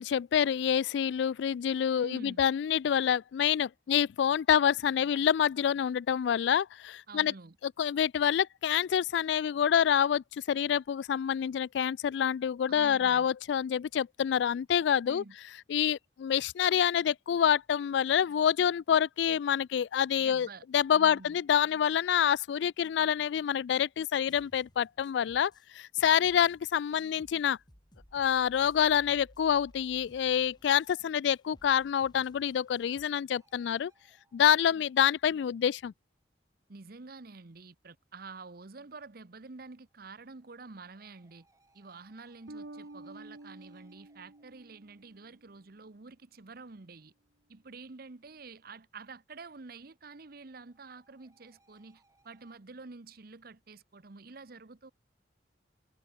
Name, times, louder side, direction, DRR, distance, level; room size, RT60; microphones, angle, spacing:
voice 1, 0.0-7.3 7.8-15.2 15.7-20.5 20.7-27.6 28.1-33.9 34.3-35.9, left 8 dB, 70° left, 0.3 m, -27 dB
voice 2, 1.9-2.4 7.1-7.6 12.7-13.3 15.0-15.3 20.2-20.7 20.9-21.4 36.7-41.5 41.7-47.1 47.5-54.9, right 3 dB, 55° right, 0.9 m, -48 dB
sound 1, 24.2-25.7 26.0-33.0, equal, 25° left, 4.4 m, -60 dB
sound 2, 33.3-35.9 39.5-45.9 49.5-52.6, right 2 dB, 20° right, 5.8 m, -72 dB
Bass guitar, 42.5-45.5, right 2 dB, 80° right, 1.4 m, -49 dB
head